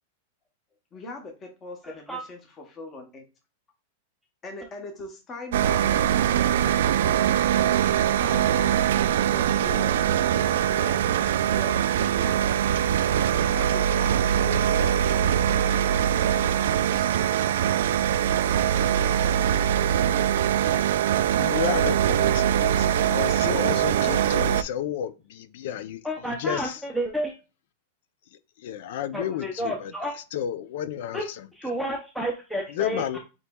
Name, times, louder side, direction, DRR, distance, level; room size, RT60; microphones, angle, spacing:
voice 1, 0.9-3.2 4.4-6.0 8.2-12.4 13.5-16.0 16.3-17.2 18.6-19.0 19.5-19.6, left 2 dB, 20° left, 0.9 m, -41 dB
voice 2, 1.8-2.2 24.1-24.2 26.0-27.3 29.1-30.1 31.1-31.3 31.5-33.2, equal, ahead, 0.6 m, -31 dB
sound 1, 5.5-24.6, right 10 dB, 70° right, 0.3 m, -22 dB
voice 3, 21.4-26.0 26.3-26.8 28.6-29.9 30.3-31.2 32.8-33.2, left 10 dB, 55° left, 0.5 m, -31 dB
7.8 x 3.0 x 2.3 m
supercardioid pair, 170°, 0 cm